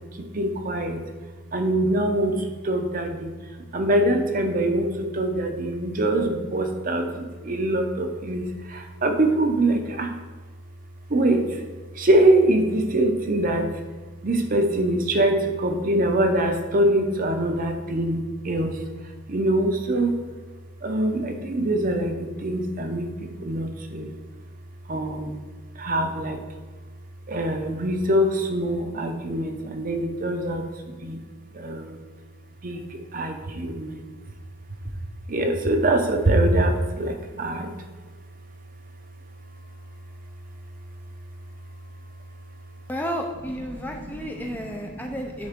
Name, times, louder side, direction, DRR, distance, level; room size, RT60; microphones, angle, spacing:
voice 1, 0.1-1.0 1.5-3.3 3.7-10.1 11.1-11.6 11.9-13.7 14.2-18.8 19.3-20.2 20.8-23.1 23.4-24.2 24.9-25.4 25.8-26.4 27.3-31.2 31.5-32.0 32.6-34.0 35.3-37.7 43.7-45.2, right 1 dB, 45° right, 5 dB, 0.7 m, -24 dB
voice 2, 42.9-45.5, equal, 10° left, 2 dB, 0.5 m, -32 dB
10.5 x 3.5 x 3.6 m, 1.3 s
head